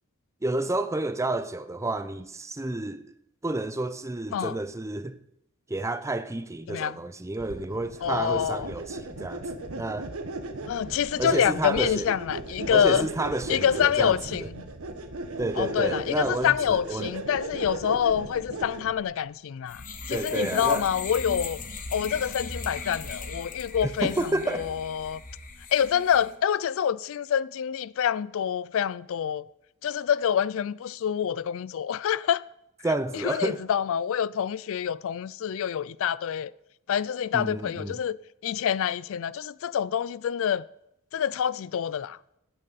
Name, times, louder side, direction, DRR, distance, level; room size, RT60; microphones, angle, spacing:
voice 1, 0.4-3.1 3.4-5.2 5.7-9.4 9.8-10.1 11.2-12.1 12.7-14.5 15.4-17.1 20.1-20.8 23.8-24.8 32.8-33.6 37.3-38.0, right 2 dB, 15° right, 0.6 m, -30 dB
sound 1, 7.4-19.1, right 2 dB, 80° right, 1.2 m, -37 dB
voice 2, 8.0-8.7 10.7-13.1 13.5-14.5 15.6-21.6 21.9-24.1 24.5-25.2 25.7-29.4 29.8-32.4 33.2-36.5 36.9-38.2 38.4-40.6 41.1-42.2, left 8 dB, 65° left, 0.4 m, -26 dB
sound 2, 19.7-26.3, left 3 dB, 40° left, 1.2 m, -38 dB
15.0 x 9.0 x 4.1 m
head